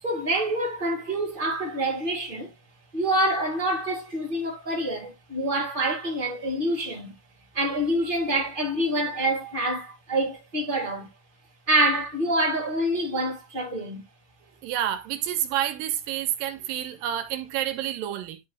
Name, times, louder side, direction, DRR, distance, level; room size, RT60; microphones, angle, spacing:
voice 1, 0.0-2.5 2.9-7.1 7.5-11.1 11.7-14.0, right 1 dB, 20° right, 1.8 m, -26 dB
voice 2, 14.6-18.4, right 11 dB, 85° right, 2.6 m, -29 dB
10.0 x 5.1 x 2.3 m
omnidirectional pair, 3.9 m